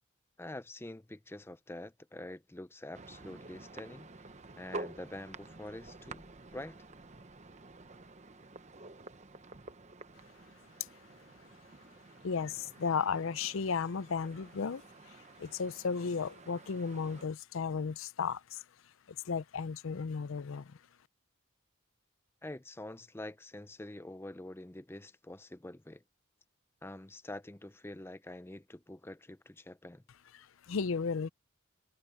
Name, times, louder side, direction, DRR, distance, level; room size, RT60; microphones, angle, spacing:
voice 1, 0.4-4.3 4.6-6.8 22.4-26.0 26.8-30.0, left 1 dB, 10° left, 0.5 m, -46 dB
sound 1, 2.9-17.2, right 2 dB, 35° right, 0.9 m, -50 dB
voice 2, 12.2-18.6 19.1-20.8 30.3-31.3, left 5 dB, 70° left, 0.5 m, -35 dB
head